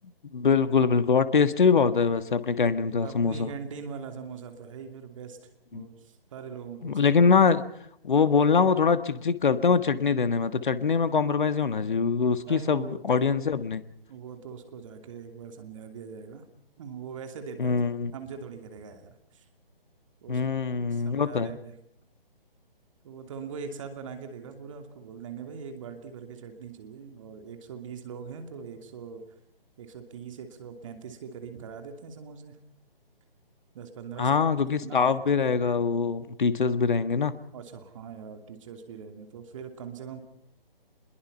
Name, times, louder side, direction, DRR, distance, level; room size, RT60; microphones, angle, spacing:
voice 1, 0.3-3.5 5.7-5.9 6.8-7.6 8.0-13.8 17.6-18.1 20.3-21.5 34.2-37.3, left 5 dB, 55° left, 13 dB, 1.6 m, -23 dB
voice 2, 3.0-7.0 12.5-13.3 14.1-16.5 16.8-17.8 18.1-19.5 20.2-20.4 20.9-21.7 23.0-29.2 29.8-32.6 33.7-34.4 34.8-35.1 37.5-40.2, right 6 dB, 35° right, 6 dB, 2.7 m, -41 dB
26.0 x 21.5 x 5.6 m, 0.73 s
figure-of-eight pair, 145°, 29 cm